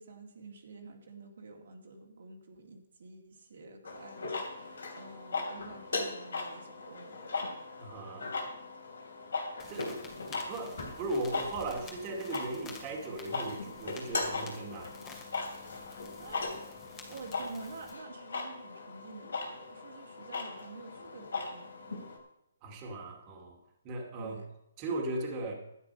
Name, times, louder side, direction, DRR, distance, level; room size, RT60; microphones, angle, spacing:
voice 1, 0.0-7.3 16.2-16.6 17.1-22.0 24.2-24.5, right 3 dB, 65° right, 2 dB, 2.3 m, -49 dB
sound 1, 3.9-22.2, left 3 dB, 80° left, 3.1 m, -39 dB
voice 2, 7.8-8.3 9.7-10.0 10.3-15.0 22.6-23.6 23.8-24.4 24.8-25.5, right 2 dB, 25° right, 1 dB, 2.3 m, -37 dB
sound 2, 9.6-17.9, left 4 dB, 15° left, 2.5 m, -51 dB
11.5 x 9.8 x 5.4 m, 0.82 s
hypercardioid pair, 155°, 0 cm